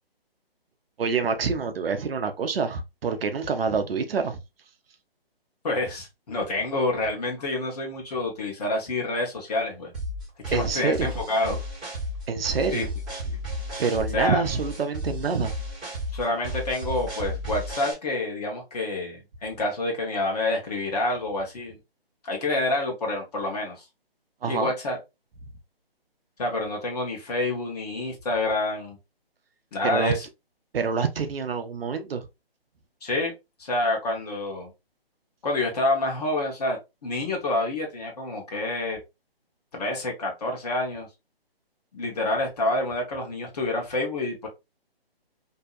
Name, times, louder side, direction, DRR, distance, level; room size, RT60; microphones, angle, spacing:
voice 1, 1.0-4.4 10.5-11.1 12.3-12.9 13.8-15.5 24.4-24.7 29.8-30.1 30.7-32.3, right 5 dB, 70° right, 0.6 m, -26 dB
voice 2, 5.6-9.9 10.5-11.6 12.7-12.9 13.3-13.4 14.1-14.4 16.1-21.8 22.2-23.8 24.4-25.0 26.4-29.0 29.7-30.2 33.0-33.3 33.6-34.7 35.4-39.0 39.7-41.1 41.9-44.5, left 2 dB, 40° left, 1.0 m, -28 dB
sound 1, 9.9-17.9, equal, ahead, 0.6 m, -33 dB
2.7 x 2.1 x 2.3 m
figure-of-eight pair, 155°, 30 cm